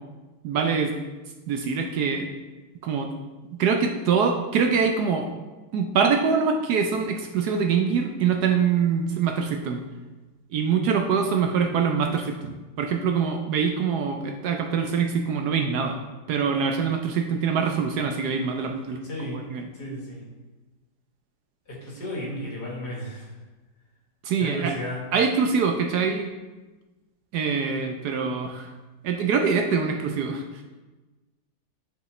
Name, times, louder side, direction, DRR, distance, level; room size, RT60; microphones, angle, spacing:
voice 1, 0.4-0.9 1.5-2.3 2.8-3.1 3.5-5.3 5.7-9.8 10.5-16.0 16.3-19.0 19.5-19.7 24.2-24.7 25.1-26.3 27.3-28.7 29.0-30.6, right 6 dB, 70° right, 4 dB, 1.0 m, -24 dB
voice 2, 19.0-19.5 19.7-20.2 21.7-23.3 24.4-25.0, equal, 60° left, -4 dB, 2.4 m, -33 dB
10.0 x 5.2 x 3.2 m, 1.2 s
omnidirectional pair, 2.0 m